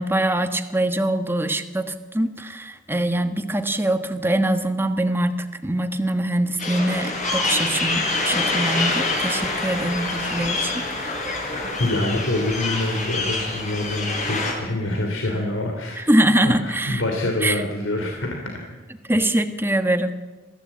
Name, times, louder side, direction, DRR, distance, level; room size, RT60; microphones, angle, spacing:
voice 1, 0.0-11.2 16.0-17.0 17.4-17.6 19.1-20.2, right 1 dB, 10° right, 7 dB, 1.3 m, -23 dB
sound 1, 6.6-14.5, left 2 dB, 35° left, 6.1 m, -26 dB
voice 2, 11.8-16.0 16.4-18.6, left 1 dB, 80° left, 2 dB, 3.2 m, -26 dB
23.0 x 15.5 x 8.5 m, 1.3 s
head